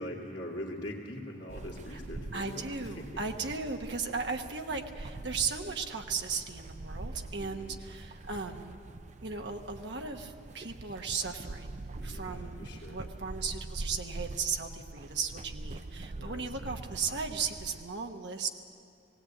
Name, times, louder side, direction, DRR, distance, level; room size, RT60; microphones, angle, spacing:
voice 1, 0.0-3.2 7.4-7.8 12.0-13.1 16.1-16.6, left 1 dB, 55° left, -8 dB, 2.3 m, -42 dB
sound 1, 1.5-17.8, right 2 dB, 40° right, 0.5 m, -44 dB
voice 2, 2.3-8.9 9.2-18.5, right 5 dB, 65° right, 4 dB, 1.2 m, -36 dB
17.5 x 17.5 x 8.5 m, 2.7 s
head